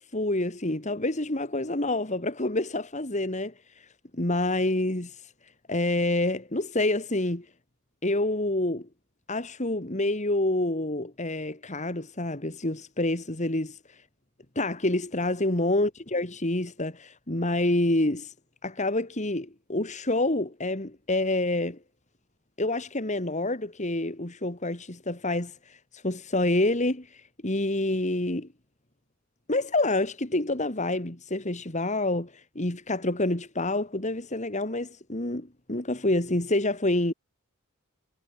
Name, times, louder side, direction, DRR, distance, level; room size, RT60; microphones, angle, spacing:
voice 1, 0.1-3.5 4.1-5.2 5.7-7.5 8.0-8.9 9.3-13.8 14.6-18.3 18.6-21.8 22.6-25.8 26.0-28.5 29.5-37.1, left 2 dB, 35° left, 2.5 m, -27 dB
head